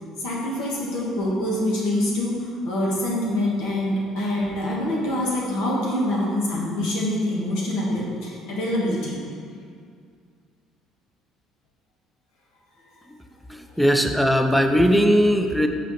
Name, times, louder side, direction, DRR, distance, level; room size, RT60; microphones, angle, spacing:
voice 1, 0.2-9.2, left 1 dB, 85° left, -4 dB, 1.8 m, -25 dB
voice 2, 13.5-15.7, equal, ahead, 5 dB, 0.4 m, -19 dB
8.0 x 5.0 x 3.3 m, 2.2 s
cardioid pair, 140°, 0 cm